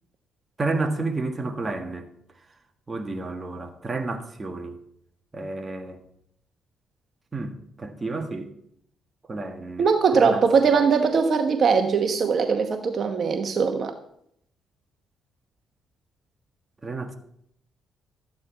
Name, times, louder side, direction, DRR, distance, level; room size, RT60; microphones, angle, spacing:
voice 1, 0.6-2.1 2.9-4.8 5.3-6.0 7.3-8.5 9.3-9.9 10.1-10.4 16.8-17.2, right 3 dB, 25° right, 1.5 m, -30 dB
voice 2, 9.8-13.9, right 5 dB, 55° right, 1.0 m, -21 dB
13.5 x 9.4 x 4.5 m
cardioid pair, 90°, 0 cm